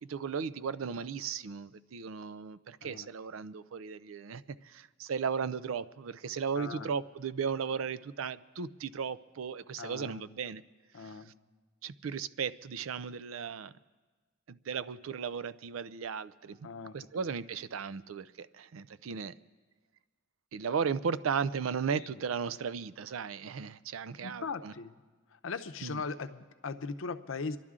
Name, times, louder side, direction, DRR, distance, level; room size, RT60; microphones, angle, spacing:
voice 1, 0.0-10.6 11.0-11.2 11.8-13.7 14.5-16.6 16.9-19.3 20.5-24.7 25.8-26.0, right 6 dB, 85° right, 0.4 m, -36 dB
voice 2, 6.6-6.9 9.8-10.3 10.9-11.3 16.6-17.3 21.9-22.2 24.2-24.9 25.4-27.6, left 4 dB, 80° left, 0.7 m, -39 dB
28.0 x 11.5 x 3.7 m
head